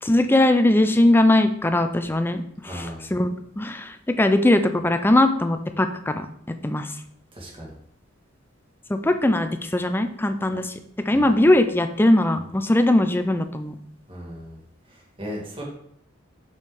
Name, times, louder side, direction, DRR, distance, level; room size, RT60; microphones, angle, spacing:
voice 1, 0.0-6.3 6.6-6.9 8.9-10.8 11.1-13.8, left 1 dB, 10° left, 8 dB, 0.4 m, -20 dB
voice 2, 2.6-3.1 7.3-7.7 11.1-11.4 14.1-14.6 14.9-15.6, equal, 25° right, -2 dB, 1.8 m, -37 dB
6.5 x 6.5 x 3.6 m, 0.69 s
head